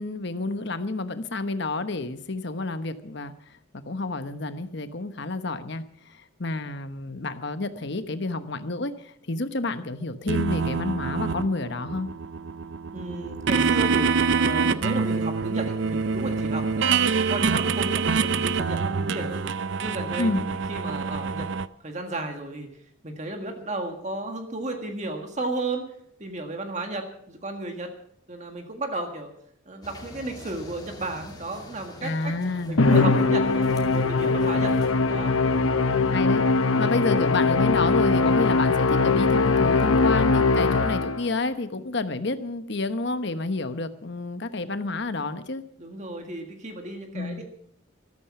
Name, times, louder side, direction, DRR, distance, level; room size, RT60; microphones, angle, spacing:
voice 1, 0.0-3.3 3.7-12.1 20.2-20.4 32.0-32.8 35.8-36.5 36.8-45.6 47.1-47.4, left 3 dB, 55° left, 10 dB, 1.1 m, -30 dB
sound 1, 10.3-21.7, right 5 dB, 60° right, 0.5 m, -26 dB
voice 2, 12.9-19.4 19.8-21.5 21.8-22.7 23.0-25.9 26.2-27.9 28.3-29.3 29.6-32.3 32.7-33.6 33.9-34.7 35.0-35.4 45.8-47.4, right 2 dB, 35° right, 4 dB, 1.7 m, -34 dB
sound 2, 29.8-34.9, left 1 dB, 20° left, 2.6 m, -43 dB
Musical instrument, 32.8-41.3, left 3 dB, 80° left, 1.0 m, -21 dB
14.0 x 13.5 x 6.0 m, 0.67 s
head